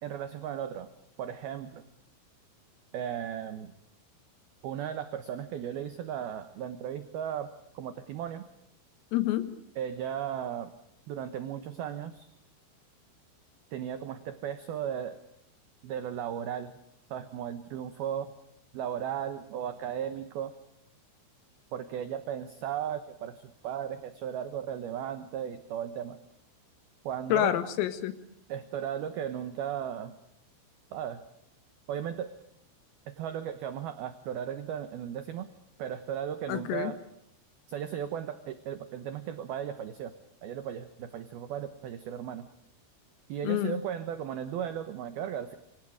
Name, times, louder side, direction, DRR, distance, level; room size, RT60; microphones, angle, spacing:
voice 1, 0.0-0.9 1.2-1.8 2.9-3.7 4.6-8.4 9.8-10.7 11.1-12.3 13.7-15.2 15.8-16.7 17.1-18.3 18.7-20.5 21.7-26.2 27.0-27.5 28.5-30.2 30.9-31.2 31.9-32.3 33.1-35.5 35.8-37.0 37.7-40.1 40.4-42.4 43.3-45.5, right 9 dB, 70° right, 11 dB, 2.4 m, -36 dB
voice 2, 9.1-9.6 27.3-28.1 36.5-36.9 43.4-43.8, left 12 dB, 90° left, 11 dB, 4.3 m, -28 dB
27.0 x 25.5 x 5.0 m, 0.76 s
omnidirectional pair, 5.8 m